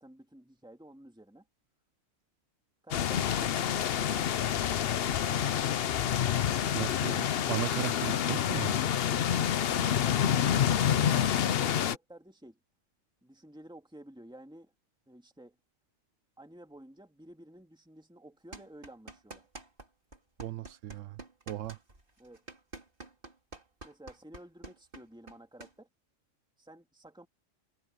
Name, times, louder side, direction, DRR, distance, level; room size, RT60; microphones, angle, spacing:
voice 1, 0.0-1.5 2.8-5.6 9.5-12.6 13.2-14.7 15.1-15.6 16.4-19.5 22.2-22.4 23.8-25.9 26.6-27.3, right 1 dB, 5° right, 2.5 m, -52 dB
sound 1, 2.9-12.0, left 9 dB, 55° left, 0.8 m, -28 dB
voice 2, 6.7-8.8 20.4-21.2 21.5-21.8, right 13 dB, 75° right, 1.0 m, -36 dB
sound 2, 18.5-19.9 20.1-25.7, right 2 dB, 40° right, 3.7 m, -47 dB
omnidirectional pair, 1.3 m